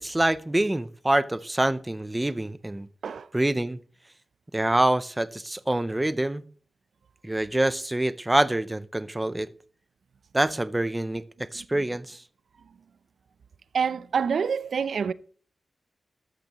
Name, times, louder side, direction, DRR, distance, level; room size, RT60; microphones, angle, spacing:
voice 1, 0.0-2.9 3.3-3.8 4.5-6.4 7.2-9.5 10.3-12.2, right 1 dB, 10° right, 0.5 m, -26 dB
voice 2, 13.7-15.1, right 6 dB, 70° right, 0.4 m, -26 dB
13.5 x 12.0 x 3.0 m
wide cardioid pair, 180°, 0 cm